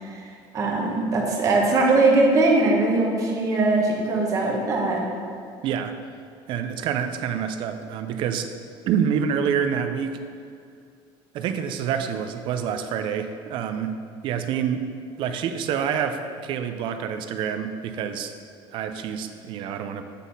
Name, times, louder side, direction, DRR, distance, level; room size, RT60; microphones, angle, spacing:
voice 1, 0.0-5.0, right 2 dB, 30° right, -1 dB, 1.3 m, -21 dB
voice 2, 5.6-5.9 6.5-8.5 8.9-10.2 11.3-13.9 14.2-14.9 15.2-18.3 18.7-20.0, right 8 dB, 55° right, 8 dB, 0.5 m, -27 dB
8.2 x 4.1 x 5.4 m, 2.3 s
cardioid pair, 155°, 10 cm